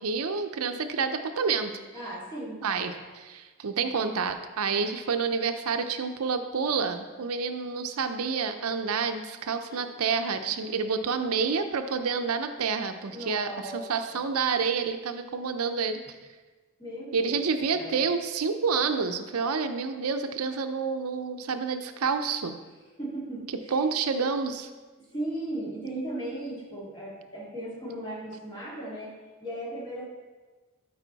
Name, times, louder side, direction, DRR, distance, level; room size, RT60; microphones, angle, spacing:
voice 1, 0.0-1.7 2.6-16.0 17.1-22.6 23.7-24.7, right 5 dB, 85° right, 8 dB, 0.6 m, -28 dB
voice 2, 1.9-3.1 9.7-9.9 13.1-13.8 14.1-14.2 16.8-17.4 17.7-18.0 23.0-23.8 25.1-29.2 29.4-30.0, right 1 dB, 20° left, -6 dB, 2.4 m, -37 dB
13.0 x 4.8 x 4.0 m, 1.3 s
head